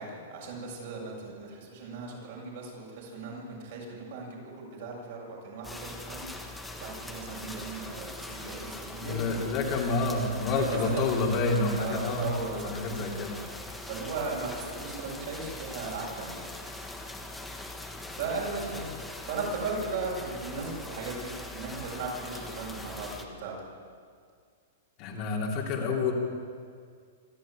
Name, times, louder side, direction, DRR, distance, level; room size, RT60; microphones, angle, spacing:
voice 1, 0.0-9.5 10.6-11.2 11.7-12.9 13.8-16.4 18.1-23.6, right 3 dB, 55° right, -2 dB, 7.4 m, -37 dB
sound 1, 5.6-23.2, left 2 dB, 5° left, 1.5 m, -42 dB
voice 2, 9.0-12.3 12.5-13.3 25.0-26.1, left 3 dB, 35° left, -1 dB, 3.2 m, -28 dB
25.5 x 11.0 x 9.1 m, 2.1 s
hypercardioid pair, 155°, 0 cm